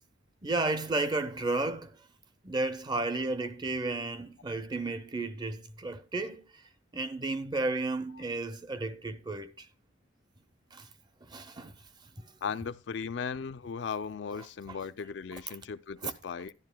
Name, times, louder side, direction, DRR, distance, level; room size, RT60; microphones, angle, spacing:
voice 1, 0.4-2.1 2.4-9.7 10.7-10.9 11.2-11.8 12.0-12.3 14.7-14.8 15.3-15.6 16.0-16.1, right 2 dB, 20° right, 0.5 m, -33 dB
voice 2, 12.4-16.5, left 6 dB, 65° left, 0.4 m, -37 dB
12.0 x 11.0 x 2.2 m
head